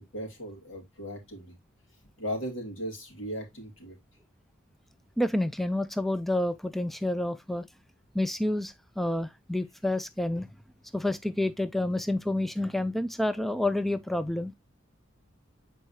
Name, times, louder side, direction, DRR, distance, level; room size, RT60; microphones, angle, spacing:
voice 1, 0.1-1.5 2.2-4.0, equal, 75° left, 2.9 m, -37 dB
voice 2, 5.2-7.7 8.1-10.5 10.9-14.5, left 1 dB, ahead, 0.3 m, -29 dB
8.0 x 4.6 x 2.7 m
head